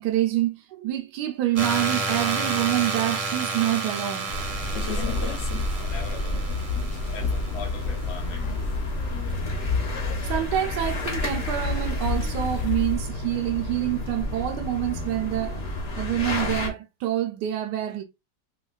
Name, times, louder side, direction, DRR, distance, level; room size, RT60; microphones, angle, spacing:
voice 1, 0.0-4.3 10.2-15.7 16.0-18.0, right 13 dB, 75° right, 1.1 m, -27 dB
sound 1, 1.5-8.4, right 4 dB, 45° right, 0.7 m, -31 dB
sound 2, 4.3-16.7, left 1 dB, 45° left, 1.0 m, -32 dB
sound 3, 4.6-13.0, left 3 dB, 85° left, 0.6 m, -29 dB
voice 2, 4.9-5.5 5.8-6.5 7.1-8.5, left 5 dB, 70° left, 1.4 m, -40 dB
4.4 x 2.2 x 2.3 m
omnidirectional pair, 1.9 m